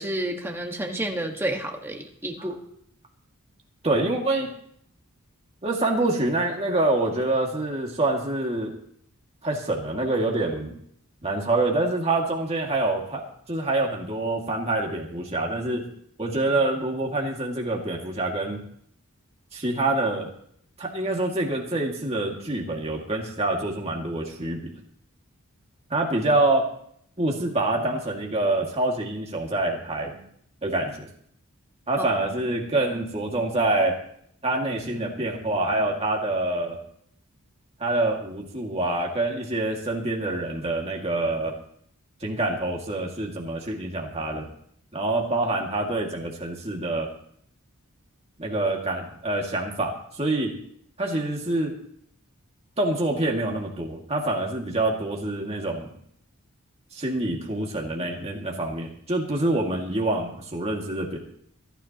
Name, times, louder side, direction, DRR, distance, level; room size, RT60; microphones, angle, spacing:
voice 1, 0.0-2.6, right 1 dB, 10° right, 2 dB, 1.6 m, -30 dB
voice 2, 3.8-4.5 5.6-8.8 9.4-10.7 11.2-15.9 16.2-18.6 19.5-20.3 20.8-24.8 25.9-26.6 27.2-30.2 30.6-31.1 31.9-34.0 34.4-36.8 37.8-41.5 42.2-44.5 44.9-47.1 48.4-50.5 51.0-51.7 52.8-55.9 56.9-61.2, right 2 dB, 30° right, -1 dB, 2.2 m, -26 dB
26.5 x 10.0 x 3.0 m, 0.66 s
head